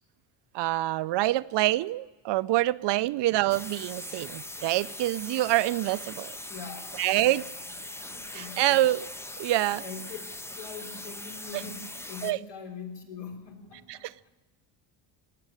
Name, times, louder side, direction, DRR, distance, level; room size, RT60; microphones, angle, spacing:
voice 1, 0.5-6.4 7.0-7.4 8.3-9.1 9.4-9.8 11.5-11.6 12.2-12.4 13.9-14.1, right 16 dB, 65° right, 16 dB, 0.6 m, -26 dB
sound 1, 3.5-12.3, left 1 dB, 5° left, 0.4 m, -41 dB
voice 2, 6.5-7.4 7.8-8.9 9.8-10.2 10.5-14.2, left 5 dB, 65° left, 2 dB, 3.7 m, -43 dB
18.0 x 7.6 x 9.9 m, 1.1 s
cardioid pair, 110°, 46 cm